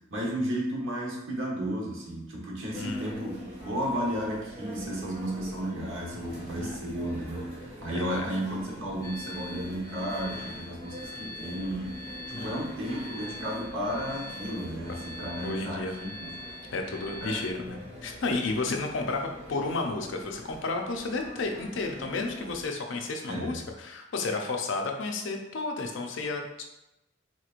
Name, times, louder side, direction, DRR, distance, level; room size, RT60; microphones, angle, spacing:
voice 1, 0.1-16.3 17.2-17.5 19.0-19.1 23.3-23.6, right 1 dB, 80° right, -3 dB, 1.1 m, -33 dB
sound 1, 2.7-22.6, equal, 30° right, 1.0 m, -44 dB
voice 2, 2.8-3.3 6.6-6.8 7.9-8.3 12.3-12.6 15.4-16.2 16.7-26.6, left 3 dB, 65° left, 3 dB, 0.5 m, -32 dB
sound 2, 9.0-17.5, left 1 dB, 15° left, 0.4 m, -44 dB
3.9 x 3.0 x 2.4 m, 0.90 s
head